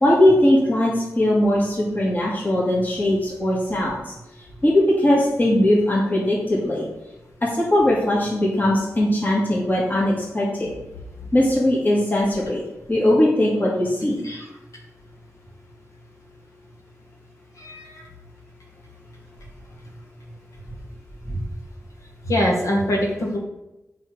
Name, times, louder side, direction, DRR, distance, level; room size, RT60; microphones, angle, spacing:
voice 1, 0.0-4.1 4.6-6.9 7.4-10.8 11.3-12.6 12.9-14.2 21.3-21.4, left 1 dB, 30° left, -5 dB, 2.2 m, -20 dB
voice 2, 17.6-18.0 22.3-23.4, left 1 dB, 65° left, -2 dB, 2.1 m, -23 dB
7.6 x 5.0 x 6.4 m, 0.97 s
wide cardioid pair, 90°, 6 cm